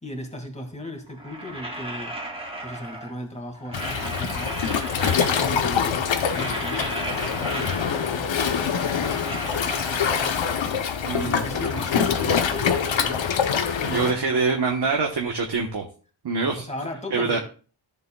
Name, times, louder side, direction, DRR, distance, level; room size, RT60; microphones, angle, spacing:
voice 1, 0.0-2.2 2.6-4.6 5.1-10.6 11.2-13.4 13.8-15.1 16.5-17.4, left 1 dB, 15° left, 2 dB, 2.2 m, -37 dB
sound 1, 1.1-3.2 3.5-5.7 6.0-8.3 8.5-10.6 11.1-13.1 13.4-15.6, right 1 dB, 10° right, 1.9 m, -36 dB
Waves surf, 3.7-14.1, left 7 dB, 70° left, 0.9 m, -25 dB
voice 2, 11.1-11.4 13.8-15.9 16.2-16.7 17.1-17.4, right 4 dB, 55° right, 1 dB, 1.3 m, -24 dB
14.0 x 6.9 x 2.3 m, 0.39 s
wide cardioid pair, 95°, 47 cm